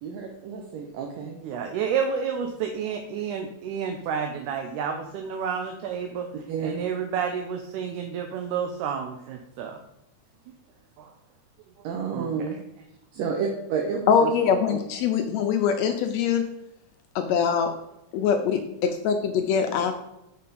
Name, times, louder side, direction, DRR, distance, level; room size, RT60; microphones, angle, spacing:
voice 1, 0.0-1.4 6.5-6.8 11.8-12.6 13.1-14.3 14.7-14.8, right 6 dB, 75° right, 1 dB, 1.8 m, -30 dB
voice 2, 1.4-6.3 6.6-9.8 11.0-11.1 12.1-12.3, right 7 dB, 90° right, 4 dB, 2.1 m, -30 dB
voice 3, 14.1-16.5 17.2-17.7 18.1-19.9, left 7 dB, 80° left, 6 dB, 1.6 m, -23 dB
6.6 x 4.2 x 5.4 m, 0.87 s
omnidirectional pair, 3.5 m